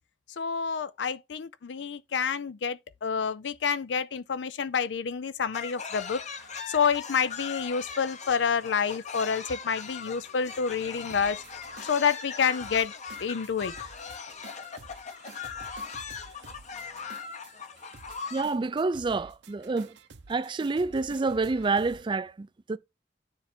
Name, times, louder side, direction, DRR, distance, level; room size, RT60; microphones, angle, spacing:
voice 1, 0.4-6.2 6.7-11.4 11.8-12.9 13.2-13.7, left 6 dB, 75° left, 0.5 m, -28 dB
sound 1, 5.5-18.4, left 5 dB, 40° left, 0.9 m, -40 dB
sound 2, 6.1-22.0, right 4 dB, 75° right, 1.0 m, -52 dB
voice 2, 18.3-20.0 20.3-22.8, right 3 dB, 25° right, 0.4 m, -28 dB
9.7 x 3.3 x 4.4 m
head